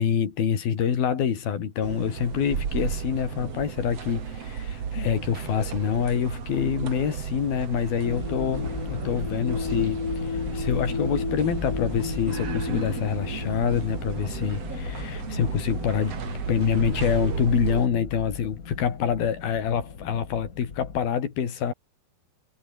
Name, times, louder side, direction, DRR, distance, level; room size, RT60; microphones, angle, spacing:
voice 1, 0.0-16.2 16.5-21.7, left 8 dB, 85° left, 5.0 m, -26 dB
sound 1, 1.8-17.9, right 7 dB, 45° right, 3.3 m, -33 dB
sound 2, 8.0-21.0, left 5 dB, 35° left, 1.6 m, -34 dB
omnidirectional pair, 4.2 m